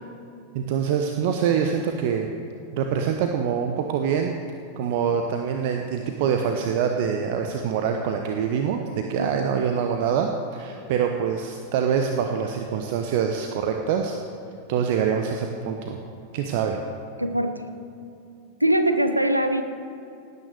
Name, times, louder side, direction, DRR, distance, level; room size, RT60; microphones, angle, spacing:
voice 1, 0.5-2.3 2.7-4.3 4.8-14.2 14.7-16.0 16.3-16.8, right 7 dB, 50° right, 4 dB, 1.0 m, -25 dB
voice 2, 9.2-9.5 17.2-17.6 18.6-19.6, right 1 dB, 85° right, 8 dB, 1.0 m, -22 dB
18.0 x 9.7 x 6.5 m, 2.7 s
figure-of-eight pair, 90°, 0 cm